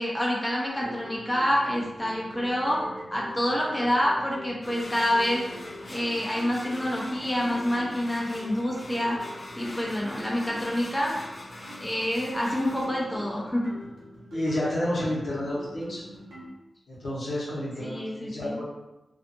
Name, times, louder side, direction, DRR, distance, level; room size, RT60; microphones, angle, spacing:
voice 1, 0.0-5.4 5.9-9.2 9.6-11.2 11.8-13.8 17.8-18.6, equal, 15° left, -3 dB, 0.7 m, -27 dB
sound 1, 0.7-16.5, equal, 90° right, 0.7 m, -44 dB
sound 2, 4.6-12.9, left 1 dB, 50° left, 0.4 m, -43 dB
voice 2, 14.3-16.0 16.9-18.6, left 1 dB, 80° left, -8 dB, 1.0 m, -30 dB
2.5 x 2.4 x 2.6 m, 0.97 s
cardioid pair, 40°, 0 cm